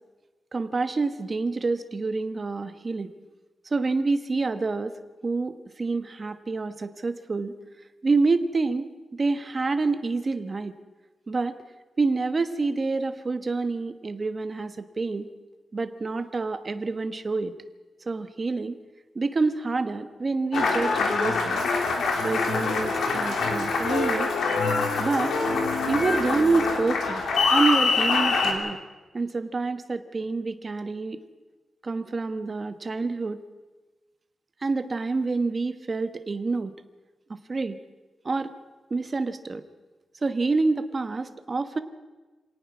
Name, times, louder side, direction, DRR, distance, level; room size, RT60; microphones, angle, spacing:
voice 1, 0.5-3.1 3.6-4.9 5.2-7.6 8.0-10.7 11.3-11.6 12.0-15.3 15.7-17.5 18.1-18.8 19.1-21.6 22.2-24.3 25.0-25.3 25.9-27.2 27.5-28.8 29.1-31.2 31.8-33.4 34.6-36.7 37.3-37.8 38.2-38.5 38.9-39.6 40.2-41.8, right 3 dB, 30° right, 10 dB, 1.1 m, -27 dB
Applause, 20.5-28.5, left 4 dB, 80° left, 3.4 m, -24 dB
25.5 x 18.0 x 6.0 m, 1.2 s
wide cardioid pair, 170°, 0 cm